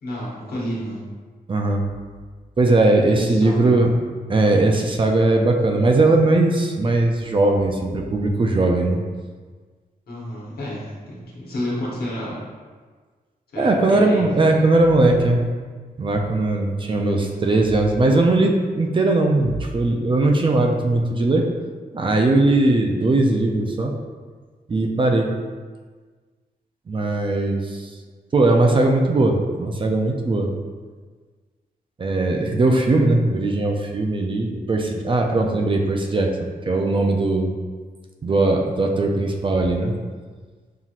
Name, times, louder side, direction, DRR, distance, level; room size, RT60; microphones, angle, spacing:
voice 1, 0.0-1.0 3.2-3.7 10.1-12.4 13.5-14.4 17.0-17.3, left 1 dB, 75° left, -6 dB, 1.2 m, -30 dB
voice 2, 1.5-1.8 2.6-3.9 4.3-9.0 13.6-15.4 16.0-21.5 21.9-23.9 24.7-25.3 26.9-27.9 28.3-30.5 32.0-36.3 36.7-37.5 38.2-39.9, right 2 dB, 30° right, 2 dB, 0.4 m, -19 dB
5.6 x 2.9 x 2.5 m, 1.5 s
wide cardioid pair, 130°, 16 cm